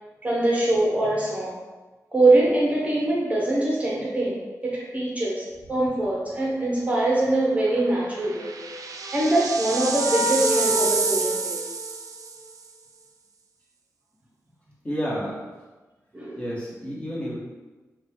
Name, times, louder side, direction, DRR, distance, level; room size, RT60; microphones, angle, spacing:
voice 1, 0.2-1.6 2.1-8.5 9.1-11.6 16.1-16.4, right 2 dB, 25° right, -4 dB, 0.7 m, -23 dB
sound 1, 5.6-6.0 6.3-6.4 7.9-12.5, right 5 dB, 75° right, 0.4 m, -29 dB
sound 2, 8.5-12.4, equal, 75° left, 0.8 m, -30 dB
voice 2, 14.8-15.4 16.4-17.4, equal, 20° left, -7 dB, 1.2 m, -30 dB
4.2 x 2.2 x 4.3 m, 1.2 s
wide cardioid pair, 135°, 6 cm